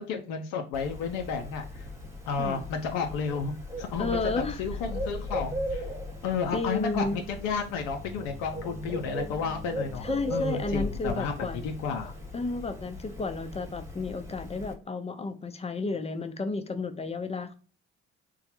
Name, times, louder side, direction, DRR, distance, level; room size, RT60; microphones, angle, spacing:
voice 1, 0.0-1.9 2.3-4.2 4.6-5.9 6.2-12.1, left 5 dB, 75° left, 0.6 m, -32 dB
Bird, 0.7-14.7, left 1 dB, 10° right, 1.2 m, -37 dB
voice 2, 4.0-4.8 6.5-7.3 10.0-11.6 12.3-17.6, left 3 dB, 20° left, 0.6 m, -32 dB
3.7 x 2.2 x 2.9 m
hypercardioid pair, 55°, 34 cm